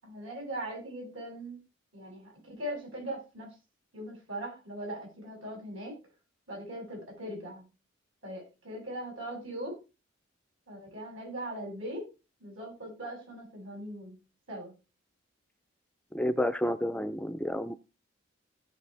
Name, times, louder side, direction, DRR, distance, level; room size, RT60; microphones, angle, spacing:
voice 1, 0.0-1.6 1.9-3.5 3.9-5.9 6.5-7.7 8.2-9.8 10.7-12.0 12.4-14.2 14.5-14.7, right 1 dB, 75° right, -1 dB, 7.6 m, -40 dB
voice 2, 16.1-17.7, left 1 dB, 5° left, 11 dB, 0.5 m, -30 dB
17.0 x 5.9 x 3.4 m, 0.29 s
head